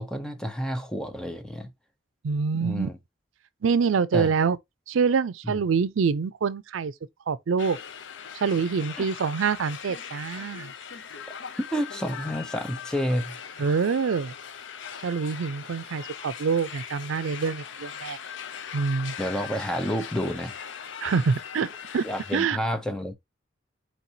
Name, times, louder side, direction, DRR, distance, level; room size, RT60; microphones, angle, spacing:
voice 1, 0.0-1.7 2.6-2.9 4.1-4.3 5.5-5.6 9.0-9.1 11.7-13.4 19.2-20.5 22.0-23.1, equal, 5° left, 0.6 m, -29 dB
voice 2, 2.2-2.9 3.6-4.6 4.9-6.9 7.3-7.8 8.3-10.7 13.6-14.3 15.0-18.2 18.7-19.1 21.0-22.0 22.3-22.6, right 5 dB, 90° right, 0.4 m, -25 dB
sound 1, 7.6-22.5, left 7 dB, 70° left, 0.6 m, -40 dB
4.5 x 4.0 x 2.7 m
head